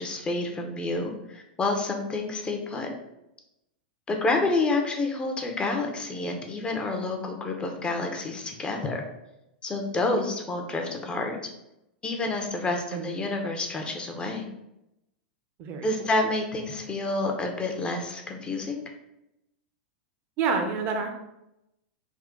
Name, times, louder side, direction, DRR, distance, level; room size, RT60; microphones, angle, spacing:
voice 1, 0.0-2.9 4.1-9.0 9.6-11.4 12.0-14.5 15.8-18.9, left 2 dB, 20° left, 3 dB, 0.7 m, -29 dB
voice 2, 12.6-13.2 15.6-15.9 20.4-21.1, right 5 dB, 40° right, 5 dB, 0.7 m, -29 dB
3.6 x 2.4 x 3.7 m, 0.87 s
hypercardioid pair, 100°, 5 cm